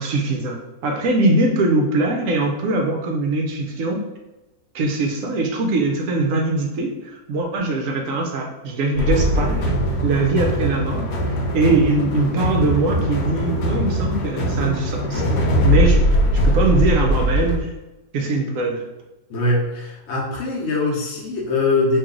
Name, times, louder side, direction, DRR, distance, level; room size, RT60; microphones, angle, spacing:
voice 1, 0.0-4.0 4.7-9.7 10.0-16.1 16.4-17.7 18.1-18.8, right 2 dB, 65° right, 2 dB, 0.8 m, -22 dB
sound 1, 9.0-17.6, equal, 75° left, 1.2 m, -20 dB
voice 2, 19.3-22.0, left 2 dB, 55° left, -3 dB, 0.9 m, -22 dB
3.1 x 2.6 x 3.7 m, 1.0 s
omnidirectional pair, 1.7 m